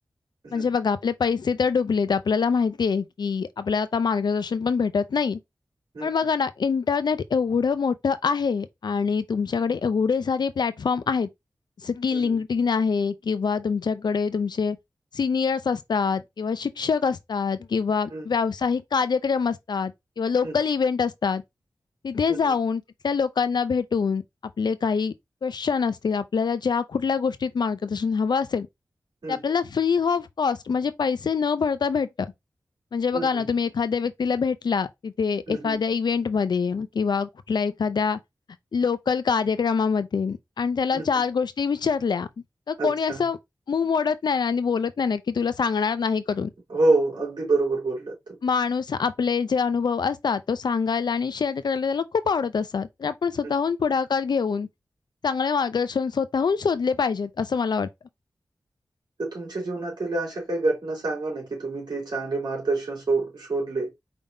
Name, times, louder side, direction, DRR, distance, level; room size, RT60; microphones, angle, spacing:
voice 1, 0.5-5.4 6.0-11.3 11.8-14.8 15.1-21.4 22.0-24.2 24.6-25.1 25.4-28.7 29.3-32.3 32.9-38.2 38.7-42.3 42.7-43.4 43.7-46.5 48.4-54.7 55.2-57.9, left 5 dB, 75° left, 0.5 m, -25 dB
voice 2, 33.1-33.5 35.5-35.8 40.9-41.2 42.8-43.2 46.7-48.4 53.4-53.5 59.2-63.9, right 3 dB, 75° right, 3.2 m, -27 dB
5.0 x 3.5 x 2.7 m
cardioid pair, 45°, 8 cm